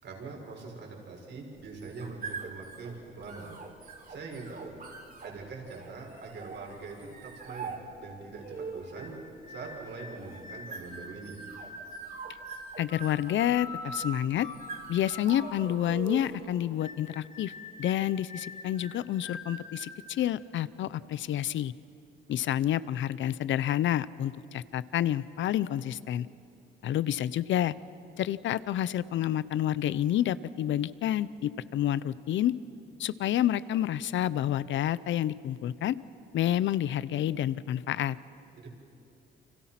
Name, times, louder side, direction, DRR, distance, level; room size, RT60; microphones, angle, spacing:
voice 1, 0.0-3.6 3.8-4.8 5.2-7.7 8.0-9.1 9.5-11.4 38.5-38.7, right 4 dB, 65° right, 0 dB, 6.1 m, -43 dB
sound 1, 1.6-16.5, right 4 dB, 50° right, 4.7 m, -44 dB
sound 2, 8.4-20.0, left 2 dB, 45° left, 3.8 m, -45 dB
voice 2, 12.8-14.5 14.9-17.5 17.8-21.7 22.3-26.3 26.8-27.7 28.2-32.5 33.0-36.0 36.3-38.2, left 11 dB, 70° left, 17 dB, 0.8 m, -29 dB
29.5 x 26.0 x 6.0 m, 2.7 s
cardioid pair, 90°, 20 cm